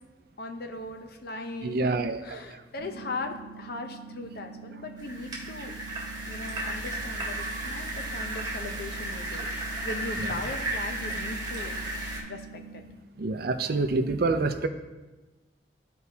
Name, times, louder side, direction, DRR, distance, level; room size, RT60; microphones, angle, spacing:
voice 1, 0.4-5.7 6.3-9.5 9.8-11.8 12.3-12.8, left 2 dB, 55° left, 5 dB, 0.7 m, -38 dB
voice 2, 1.6-2.4 7.5-7.6 10.2-10.3 13.2-14.7, right 3 dB, 55° right, 8 dB, 0.5 m, -27 dB
sound 1, 2.8-12.8, right 5 dB, 35° left, 2.4 m, -45 dB
sound 2, 5.0-12.2, right 1 dB, 20° right, 1.6 m, -34 dB
13.0 x 4.6 x 2.8 m, 1.1 s
head